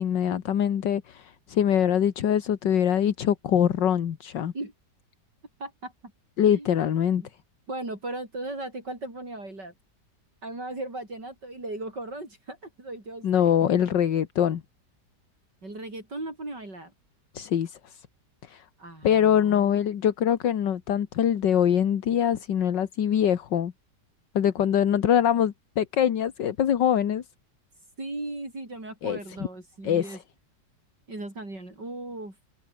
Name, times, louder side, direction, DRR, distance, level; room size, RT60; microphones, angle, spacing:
voice 1, 0.0-4.5 6.4-7.2 13.2-14.6 17.3-18.1 18.4-18.7 19.0-23.7 24.4-27.2 29.0-29.2 29.8-30.2, left 9 dB, 80° left, 2.0 m, -23 dB
voice 2, 5.6-6.1 6.5-6.7 7.7-9.7 10.4-13.5 15.6-16.9 18.8-19.8 28.0-30.2 31.1-32.4, right 2 dB, 70° right, 8.3 m, -37 dB
omnidirectional pair, 1.9 m